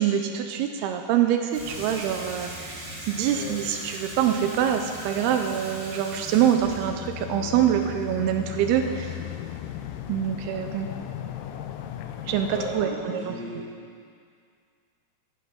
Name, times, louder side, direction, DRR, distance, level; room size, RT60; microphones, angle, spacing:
voice 1, 0.0-9.2 10.1-10.9 12.3-13.3, right 9 dB, 85° right, 6 dB, 2.5 m, -25 dB
Water tap faucet / Sink (filling or washing), 1.5-8.5, right 1 dB, 60° right, 5.4 m, -40 dB
sound 1, 6.6-12.8, left 11 dB, 80° left, 2.0 m, -36 dB
voice 2, 12.5-13.7, right 1 dB, 5° left, -8 dB, 2.3 m, -35 dB
15.0 x 11.0 x 5.2 m, 2.2 s
omnidirectional pair, 4.7 m